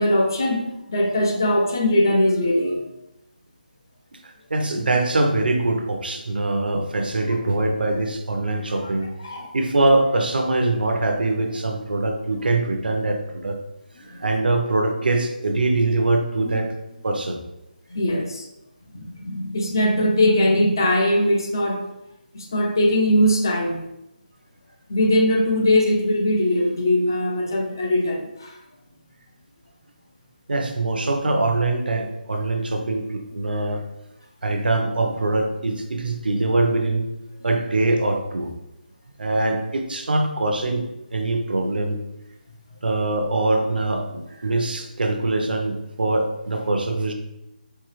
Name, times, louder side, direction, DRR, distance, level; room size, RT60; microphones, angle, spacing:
voice 1, 0.0-2.9 8.8-8.9 9.2-9.5 14.1-14.2 16.4-16.6 17.9-18.5 18.9-21.9 22.3-23.8 24.9-28.6, left 1 dB, 25° left, 1 dB, 0.3 m, -21 dB
voice 2, 4.1-9.1 9.5-13.6 14.0-16.7 17.0-17.4 30.5-33.8 34.4-37.1 37.4-38.5 39.2-42.0 42.8-47.1, right 2 dB, 75° right, 4 dB, 0.7 m, -23 dB
4.6 x 2.7 x 3.0 m, 0.90 s
hypercardioid pair, 175°, 5 cm